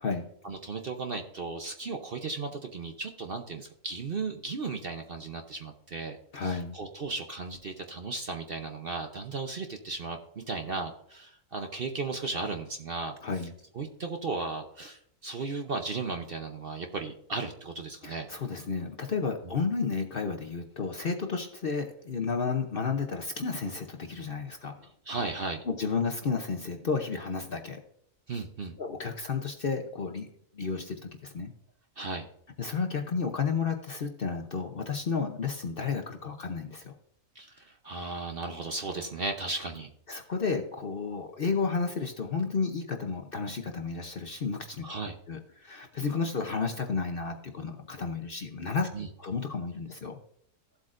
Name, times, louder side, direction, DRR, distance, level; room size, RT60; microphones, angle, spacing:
voice 1, 0.4-13.1 13.7-18.3 19.5-19.6 25.1-25.6 28.3-28.7 32.0-32.3 37.4-39.9 44.8-45.2 48.9-49.1, right 3 dB, 50° right, 4 dB, 0.8 m, -35 dB
voice 2, 6.3-6.7 13.2-13.5 18.0-24.7 25.7-27.8 28.8-30.3 30.5-31.5 32.6-36.9 40.1-44.8 45.3-48.9 49.2-50.2, left 5 dB, 45° left, 4 dB, 0.8 m, -32 dB
14.5 x 7.9 x 2.5 m, 0.68 s
omnidirectional pair, 1.6 m